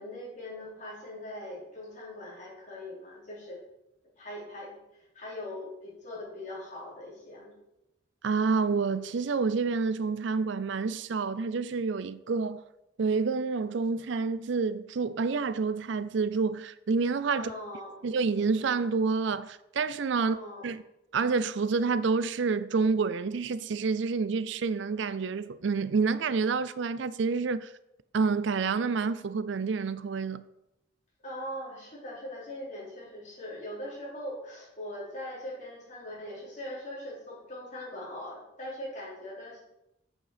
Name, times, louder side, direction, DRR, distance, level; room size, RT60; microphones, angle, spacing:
voice 1, 0.0-3.6 4.2-7.5 17.3-18.0 20.2-20.7 31.2-39.6, left 1 dB, 35° left, 4.1 m, -41 dB
voice 2, 8.2-12.6 13.0-17.5 18.0-20.4 20.6-20.8 21.1-27.7 28.1-30.4, right 4 dB, 65° right, 0.4 m, -28 dB
8.4 x 8.0 x 5.0 m
head